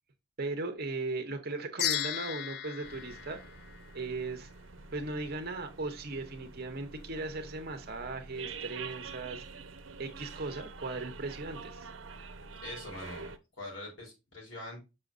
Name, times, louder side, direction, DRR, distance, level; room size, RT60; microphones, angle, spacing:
voice 1, 0.4-3.4 3.9-4.5 4.9-9.4 10.0-11.9, right 3 dB, 55° right, 1.0 m, -37 dB
sound 1, 1.8-4.3, left 10 dB, 55° left, 0.6 m, -35 dB
sound 2, 2.8-13.4, right 4 dB, 80° right, 0.8 m, -47 dB
voice 2, 12.6-14.8, left 1 dB, 70° left, 3.9 m, -43 dB
6.6 x 5.7 x 2.5 m
head